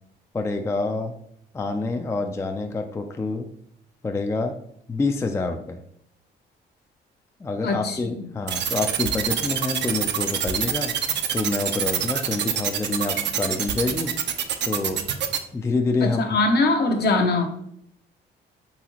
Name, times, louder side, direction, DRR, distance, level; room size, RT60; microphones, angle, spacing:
voice 1, 0.3-1.1 1.5-3.5 4.0-4.6 4.9-5.8 7.4-10.9 11.3-14.2 14.6-15.1 15.5-16.2, left 3 dB, 15° left, 6 dB, 0.3 m, -27 dB
voice 2, 7.6-8.3 16.0-17.5, left 2 dB, 55° left, 5 dB, 0.7 m, -22 dB
sound 1, 8.5-15.4, right 9 dB, 60° right, 0.5 m, -25 dB
4.1 x 3.6 x 2.9 m, 0.72 s
cardioid pair, 90°, 20 cm